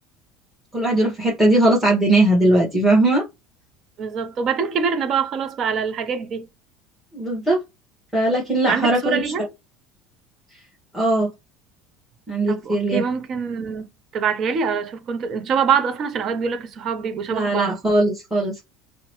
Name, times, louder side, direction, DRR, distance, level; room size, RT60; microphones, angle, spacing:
voice 1, 0.7-3.2 7.1-7.6 8.1-9.2 10.9-11.3 12.3-13.0 17.3-18.6, right 1 dB, ahead, 1.1 m, -19 dB
voice 2, 4.0-6.5 8.7-9.5 12.5-13.9 14.1-17.8, right 6 dB, 45° right, 0.6 m, -24 dB
2.8 x 2.1 x 2.9 m
supercardioid pair, 120°, 0 cm